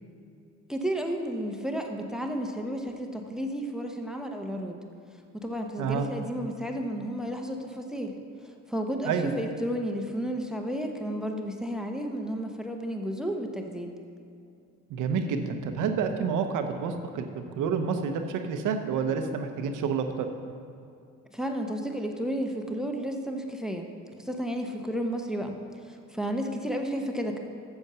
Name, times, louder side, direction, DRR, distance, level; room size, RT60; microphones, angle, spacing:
voice 1, 0.7-4.8 5.3-8.1 8.4-13.9 21.3-23.9 24.2-25.6 25.9-27.4, equal, ahead, 3 dB, 0.9 m, -32 dB
voice 2, 14.9-20.3, right 6 dB, 85° right, 6 dB, 0.9 m, -29 dB
8.1 x 7.1 x 6.8 m, 2.5 s
cardioid pair, 90°, 30 cm